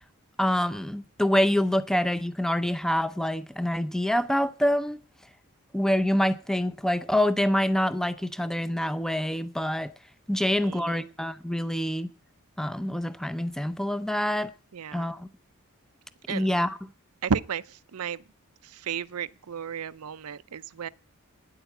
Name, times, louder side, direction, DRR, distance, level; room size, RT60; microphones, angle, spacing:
voice 1, 0.4-5.0 5.7-9.9 10.3-12.1 12.6-14.5 14.9-15.3 16.3-16.9, left 1 dB, ahead, 0.6 m, -26 dB
voice 2, 10.4-11.1 14.7-15.1 16.3-16.5 17.2-17.6 17.9-18.2 18.7-20.9, right 6 dB, 80° right, 0.5 m, -33 dB
10.0 x 8.0 x 8.2 m
head